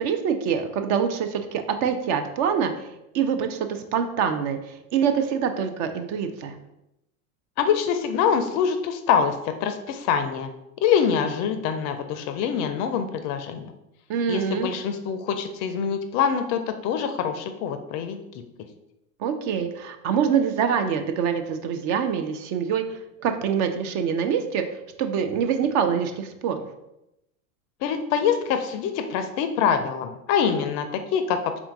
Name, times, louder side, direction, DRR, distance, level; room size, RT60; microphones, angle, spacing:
voice 1, 0.0-6.6 14.1-14.7 19.2-26.6, right 7 dB, 45° right, 7 dB, 0.5 m, -25 dB
voice 2, 7.6-10.5 10.8-13.7 14.3-18.4 27.8-31.6, left 7 dB, 40° left, 7 dB, 0.4 m, -25 dB
3.6 x 2.5 x 4.5 m, 0.89 s
hypercardioid pair, 105°, 44 cm